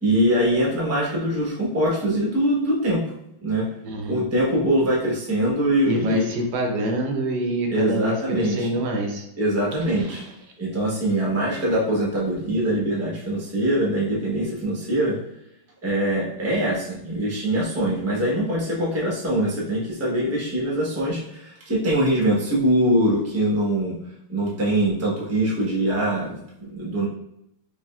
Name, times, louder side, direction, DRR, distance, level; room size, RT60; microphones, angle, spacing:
voice 1, 0.0-3.0 3.4-3.7 4.1-6.2 7.7-8.7 9.4-10.2 10.6-15.2 15.8-24.0 24.3-27.1, right 1 dB, 20° right, -5 dB, 0.4 m, -23 dB
voice 2, 3.8-4.2 5.8-9.2 9.9-10.3, right 1 dB, 65° right, 1 dB, 1.1 m, -26 dB
5.0 x 2.9 x 2.3 m, 0.78 s
omnidirectional pair, 2.2 m